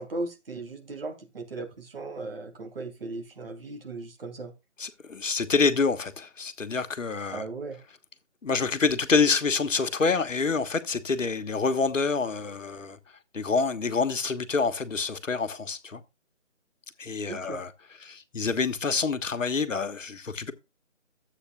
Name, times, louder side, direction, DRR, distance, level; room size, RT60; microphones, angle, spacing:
voice 1, 0.0-4.5 7.3-7.8 17.3-17.6, right 3 dB, 50° right, 2.7 m, -37 dB
voice 2, 4.8-7.4 8.4-13.0 13.3-16.0 17.0-17.7 18.0-20.5, left 4 dB, 85° left, 1.4 m, -27 dB
13.5 x 8.2 x 2.3 m
figure-of-eight pair, 165°, 37 cm